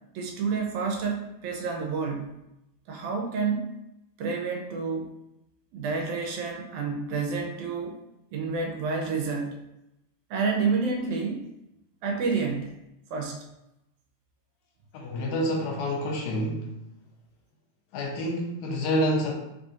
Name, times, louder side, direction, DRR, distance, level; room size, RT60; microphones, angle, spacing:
voice 1, 0.2-2.4 2.9-3.7 4.2-5.1 5.7-8.0 8.3-9.6 10.3-11.5 12.0-12.8 13.1-13.4, right 4 dB, 80° right, 2 dB, 1.9 m, -29 dB
voice 2, 14.9-16.7 17.9-19.3, equal, 85° left, 0 dB, 2.0 m, -28 dB
4.9 x 2.6 x 2.4 m, 0.87 s
omnidirectional pair, 3.4 m